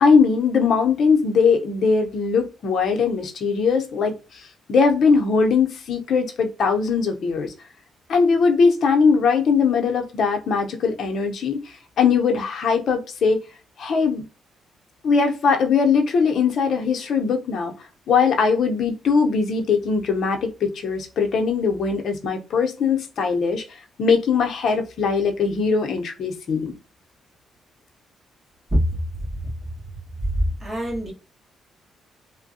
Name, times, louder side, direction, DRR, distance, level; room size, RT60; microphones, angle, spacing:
voice 1, 0.0-7.5 8.1-11.6 12.0-13.4 13.8-14.2 15.0-17.7 18.1-23.6 24.0-26.7, left 5 dB, 60° left, 3 dB, 0.7 m, -20 dB
voice 2, 30.6-31.1, equal, 25° right, -3 dB, 1.5 m, -22 dB
3.3 x 2.2 x 2.7 m, 0.31 s
cardioid pair, 90°, 0 cm